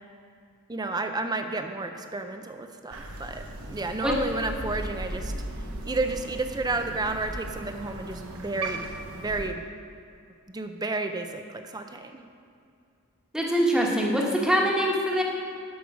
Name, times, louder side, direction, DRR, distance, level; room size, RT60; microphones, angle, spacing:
voice 1, 0.7-5.3 5.9-8.9 9.1-9.7 10.5-12.2, right 3 dB, 20° right, 6 dB, 0.6 m, -31 dB
Crow, 2.9-9.5, right 1 dB, 90° right, 1.0 m, -37 dB
voice 2, 13.3-15.2, equal, 5° right, -2 dB, 1.3 m, -23 dB
12.5 x 5.5 x 6.0 m, 2.4 s
head